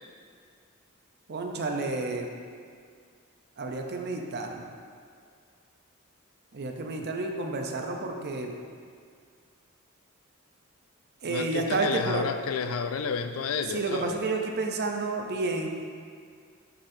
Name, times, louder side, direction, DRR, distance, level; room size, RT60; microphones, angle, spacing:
voice 1, 1.3-2.3 3.6-4.7 6.5-8.6 11.2-12.2 13.7-15.7, right 3 dB, 50° right, 2 dB, 0.6 m, -30 dB
voice 2, 11.3-14.2, left 5 dB, 75° left, 8 dB, 0.4 m, -31 dB
10.0 x 4.2 x 2.7 m, 2.2 s
head